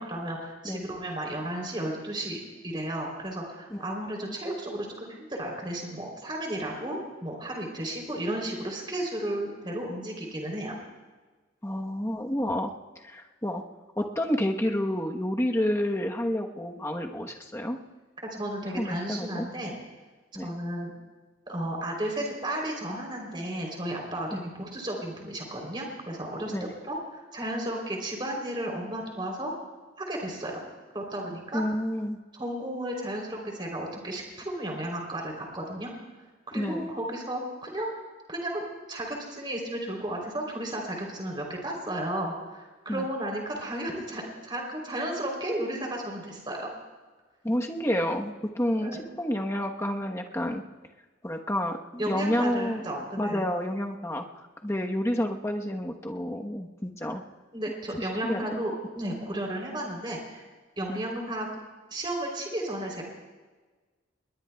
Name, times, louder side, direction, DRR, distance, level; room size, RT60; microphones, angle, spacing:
voice 1, 0.0-10.8 18.2-19.7 20.4-20.9 21.5-29.5 30.0-30.6 30.9-31.6 32.3-35.9 36.5-37.9 38.3-46.7 48.8-49.0 52.0-53.5 57.5-60.4 60.8-61.5 61.9-63.0, right 1 dB, 25° right, 0 dB, 3.3 m, -33 dB
voice 2, 11.6-12.7 13.0-13.6 14.0-17.8 18.8-19.8 20.3-20.5 24.3-24.4 26.5-26.7 31.5-32.2 36.6-36.9 42.9-43.0 47.4-50.6 51.2-52.8 53.2-54.2 54.6-57.2 58.0-58.6 60.9-61.0, left 1 dB, 15° left, 2 dB, 1.0 m, -29 dB
28.0 x 21.0 x 2.3 m, 1.3 s
head